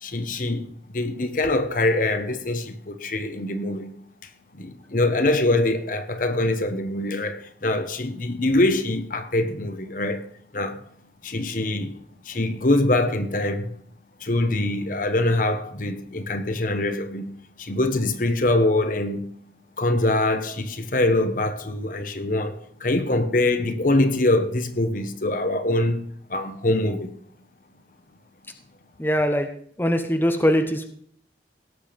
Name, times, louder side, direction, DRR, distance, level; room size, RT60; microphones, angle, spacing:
voice 1, 0.0-4.0 4.5-10.3 10.5-10.8 11.2-12.0 12.2-13.8 14.2-17.3 17.6-19.2 19.8-27.1, left 2 dB, 50° left, 1.1 m, -24 dB
voice 2, 29.0-29.5 29.8-30.8, equal, 10° left, 1.0 m, -21 dB
17.5 x 7.1 x 5.2 m
head